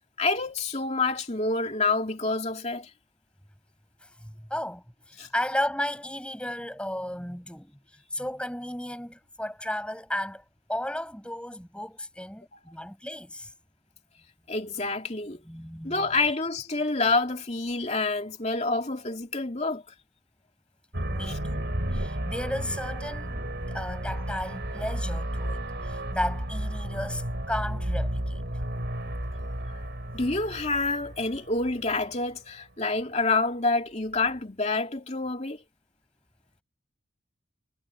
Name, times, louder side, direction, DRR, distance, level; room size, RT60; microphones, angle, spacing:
voice 1, 0.2-2.9 5.2-5.3 12.5-12.6 14.5-15.4 15.8-19.8 21.3-21.4 30.1-35.6, left 3 dB, 30° left, 2.9 m, -27 dB
voice 2, 4.0-13.5 15.4-16.4 21.1-23.4 23.7-28.4, left 1 dB, 5° left, 7.0 m, -34 dB
sound 1, 20.9-32.2, right 1 dB, 55° right, 3.7 m, -32 dB
head